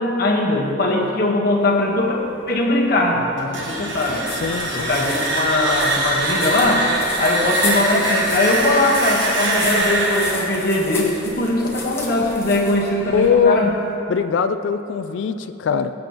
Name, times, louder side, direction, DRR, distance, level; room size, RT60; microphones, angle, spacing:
voice 1, 0.0-2.2 2.5-4.3 4.7-6.9 7.2-13.7, left 2 dB, 50° left, -2 dB, 1.3 m, -20 dB
sound 1, 3.4-12.2, right 1 dB, 65° right, 1.3 m, -23 dB
sound 2, 3.7-13.6, left 3 dB, 10° left, 0.9 m, -33 dB
voice 2, 4.3-4.9 13.1-13.7 14.1-15.9, left 6 dB, 65° left, 10 dB, 0.3 m, -21 dB
16.0 x 7.9 x 3.0 m, 2.9 s
head